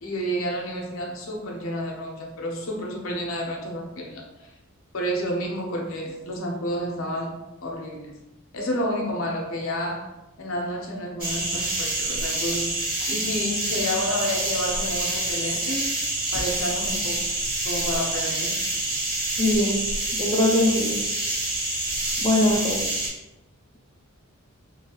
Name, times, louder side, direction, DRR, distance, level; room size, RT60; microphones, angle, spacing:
voice 1, 0.0-4.2 4.9-7.4 7.6-8.1 8.5-10.1 10.4-12.7 13.1-15.9 16.3-17.3 17.6-18.6, equal, 65° left, 0 dB, 0.6 m, -30 dB
sound 1, 11.2-23.1, right 2 dB, 40° right, 1.0 m, -27 dB
voice 2, 19.4-19.8 20.1-21.0 22.2-22.8, left 1 dB, 25° left, 1 dB, 0.4 m, -21 dB
2.7 x 2.3 x 2.8 m, 0.99 s
head